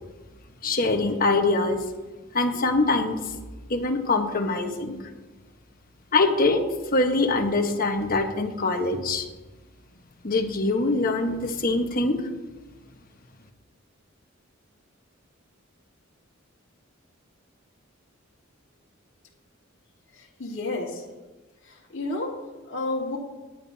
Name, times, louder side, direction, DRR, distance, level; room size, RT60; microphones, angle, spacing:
voice 1, 0.6-1.8 2.3-3.2 3.7-5.0 6.1-6.7 6.9-9.2 10.2-12.2, left 3 dB, 45° left, 4 dB, 1.2 m, -23 dB
voice 2, 20.1-21.0 21.6-23.2, left 2 dB, 65° left, -4 dB, 1.8 m, -31 dB
16.5 x 10.5 x 2.8 m, 1.2 s
head